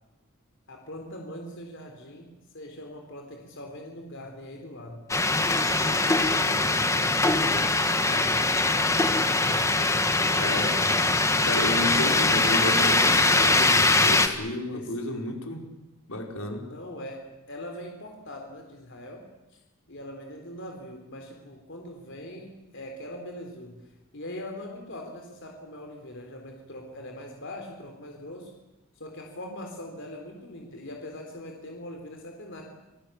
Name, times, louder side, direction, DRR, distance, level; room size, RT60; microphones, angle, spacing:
voice 1, 0.7-5.0 5.8-6.9 7.3-9.6 10.4-10.9 14.7-14.9 16.6-19.2 19.9-23.8 24.1-28.5 29.0-32.6, left 1 dB, 60° left, 2 dB, 3.9 m, -41 dB
sound 1, 5.1-14.3, left 2 dB, 15° left, 1.6 m, -22 dB
voice 2, 10.3-10.9 11.5-15.6 16.1-16.7, left 1 dB, 80° left, 2 dB, 4.7 m, -32 dB
28.0 x 19.5 x 8.6 m, 0.98 s
head